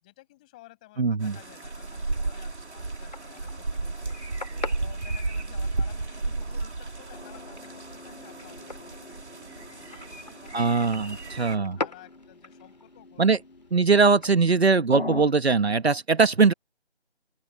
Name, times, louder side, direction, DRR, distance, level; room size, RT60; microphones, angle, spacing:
voice 1, 0.0-9.3 9.7-13.4 13.7-14.7, left 18 dB, 5° left, 6.4 m, -53 dB
voice 2, 1.0-1.4 10.5-11.8 13.2-13.4 13.7-16.5, right 4 dB, 70° right, 1.3 m, -21 dB
sound 1, 1.2-11.6, right 3 dB, 85° right, 3.3 m, -34 dB
sound 2, 2.6-14.6, left 3 dB, 40° left, 2.4 m, -43 dB
sound 3, 7.1-15.2, left 2 dB, 60° left, 7.5 m, -43 dB
open air
figure-of-eight pair, 180°, 33 cm